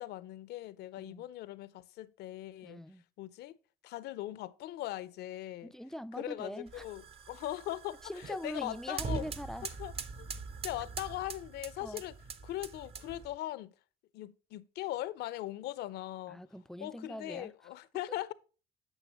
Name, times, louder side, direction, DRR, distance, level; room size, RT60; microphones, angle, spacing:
voice 1, 0.0-2.8 3.2-3.6 3.8-5.7 6.1-9.2 9.6-10.3 10.6-12.1 12.4-13.7 14.1-16.4 16.8-18.3, left 15 dB, 75° left, 0.5 m, -40 dB
voice 2, 2.6-3.0 5.6-6.8 8.0-9.7 11.8-12.0 16.3-17.5, equal, 5° left, 0.3 m, -42 dB
sound 1, 6.7-13.4, right 5 dB, 35° right, 0.6 m, -43 dB
9.0 x 6.4 x 2.9 m
cardioid pair, 110°, 17 cm